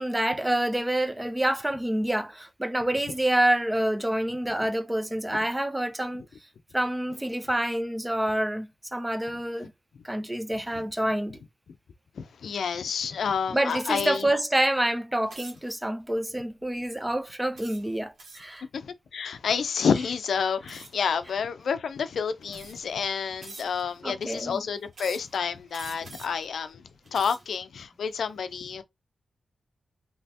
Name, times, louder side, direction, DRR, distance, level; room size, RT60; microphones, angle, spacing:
voice 1, 0.0-6.2 6.7-9.7 10.0-11.4 13.5-18.6 24.0-24.6, right 1 dB, 10° right, 0.6 m, -27 dB
voice 2, 12.2-14.2 18.7-26.8 27.1-28.8, left 6 dB, 80° left, 0.5 m, -29 dB
sound 1, 15.3-15.7 16.4-16.6 17.6-18.6 20.7-21.1 21.9-22.0 22.5-22.9 23.4-24.0 24.9-25.4 25.7-26.4 26.9-27.6, right 3 dB, 75° right, 1.5 m, -45 dB
3.3 x 2.9 x 2.8 m
cardioid pair, 65°, 0 cm